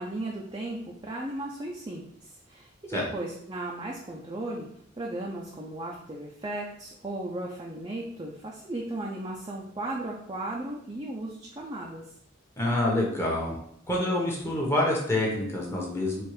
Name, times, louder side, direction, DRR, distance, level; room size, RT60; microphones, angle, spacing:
voice 1, 0.0-4.7 5.0-12.0, right 1 dB, 20° right, -3 dB, 0.5 m, -36 dB
voice 2, 12.6-13.6 13.9-16.2, left 1 dB, 15° left, -3 dB, 1.1 m, -27 dB
4.4 x 2.5 x 4.8 m, 0.71 s
head